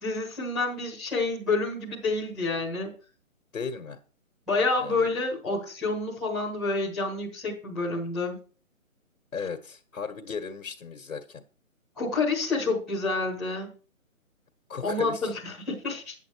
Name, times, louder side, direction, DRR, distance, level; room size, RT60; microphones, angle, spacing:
voice 1, 0.0-2.9 4.5-8.4 11.9-13.7 14.8-16.1, left 3 dB, ahead, -8 dB, 1.4 m, -28 dB
voice 2, 3.5-4.0 4.8-5.1 9.3-11.4 14.7-15.3, left 5 dB, 80° left, 4 dB, 1.8 m, -36 dB
10.5 x 8.2 x 4.7 m, 0.38 s
hypercardioid pair, 175°, 41 cm